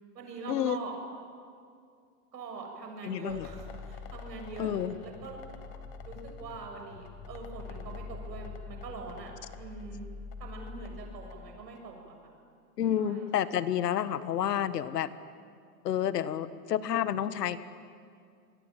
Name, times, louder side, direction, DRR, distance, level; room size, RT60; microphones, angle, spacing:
voice 1, 0.2-1.0 2.3-5.4 6.0-9.3 9.6-10.0 10.4-12.2 13.0-13.6, right 4 dB, 90° right, 2 dB, 7.2 m, -43 dB
voice 2, 3.0-3.5 4.6-4.9 12.8-15.1 15.8-17.6, left 10 dB, 75° left, 13 dB, 1.6 m, -29 dB
sound 1, 3.3-11.9, left 5 dB, 15° left, 0.9 m, -45 dB
28.5 x 22.0 x 9.1 m, 2.3 s
supercardioid pair, 180°, 48 cm